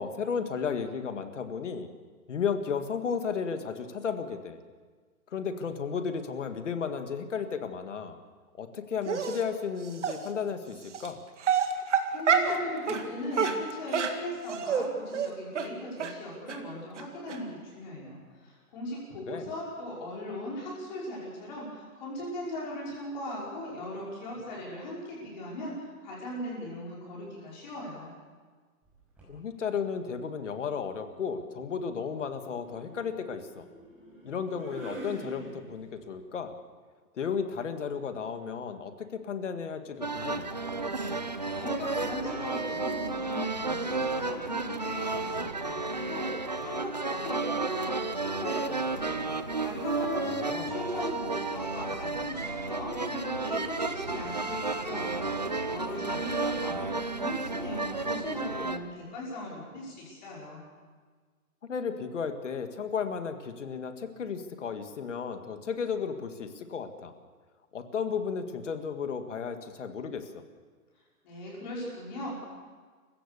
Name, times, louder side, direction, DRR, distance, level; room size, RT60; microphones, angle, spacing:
voice 1, 0.0-1.9 2.3-4.6 5.3-8.2 8.6-11.2 19.3-19.5 29.3-33.7 34.2-36.5 37.2-40.5 50.2-50.8 61.7-67.1 67.7-70.4, left 6 dB, 50° left, 8 dB, 1.9 m, -34 dB
Dog, 9.1-9.4 10.0-10.2 10.9-11.1 11.4-12.6 12.9-13.0 13.3-14.9 15.1-15.3 15.6-15.7 16.0-16.1 16.5-16.6 17.0-17.1 17.3-17.4, right 7 dB, 50° right, 2.1 m, -27 dB
voice 2, 12.1-28.1 41.5-49.1 49.6-60.6 71.2-72.4, left 1 dB, 30° left, -5 dB, 5.4 m, -38 dB
sound 1, 28.8-29.4 30.7-36.0, right 1 dB, 5° right, 5.1 m, -46 dB
sound 2, 40.0-58.8, right 3 dB, 30° right, 0.5 m, -32 dB
27.5 x 16.0 x 6.9 m, 1.5 s
hypercardioid pair, 170°, 46 cm